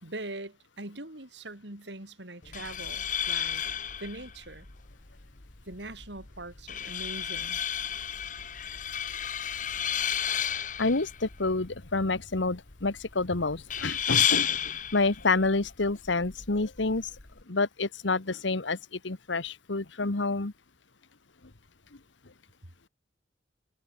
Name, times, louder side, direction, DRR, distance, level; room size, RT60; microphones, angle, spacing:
voice 1, 0.0-3.6 4.0-4.7 5.7-7.6, right 2 dB, 65° right, 4.4 m, -42 dB
sound 1, 2.4-17.4, left 9 dB, 45° left, 1.4 m, -33 dB
voice 2, 10.8-17.1 17.5-20.5, left 3 dB, 75° left, 1.4 m, -28 dB
head